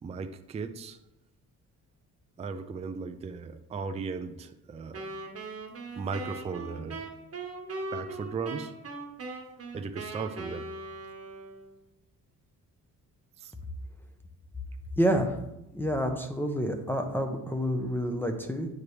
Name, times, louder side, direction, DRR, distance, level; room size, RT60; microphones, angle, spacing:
voice 1, 0.0-1.0 2.4-5.2 6.0-7.1 7.9-8.7 9.7-10.7 13.4-13.5, right 5 dB, 20° right, 8 dB, 0.4 m, -37 dB
Wind instrument woodwind instrument, 4.9-11.8, right 3 dB, 45° right, 1.1 m, -40 dB
voice 2, 15.0-15.4 15.7-18.7, equal, 5° left, 5 dB, 0.7 m, -28 dB
8.5 x 4.9 x 3.2 m, 0.90 s
cardioid pair, 115°, 34 cm